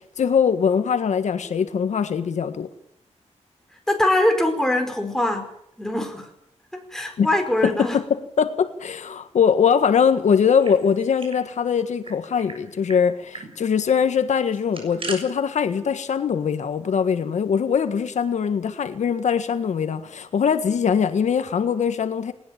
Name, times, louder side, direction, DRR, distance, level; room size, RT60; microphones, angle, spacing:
voice 1, 0.2-2.7 7.2-7.3 7.6-22.3, left 7 dB, 80° left, 9 dB, 1.6 m, -22 dB
voice 2, 3.9-5.5 5.8-6.3 6.7-8.0, left 1 dB, 5° left, 4 dB, 4.8 m, -22 dB
sound 1, 10.3-11.4 11.7-11.8 12.0-12.6 12.9-13.0 13.3-13.5 14.5-15.2, right 4 dB, 50° right, 7.1 m, -37 dB
19.5 x 19.5 x 8.9 m, 0.75 s
wide cardioid pair, 140°, 12 cm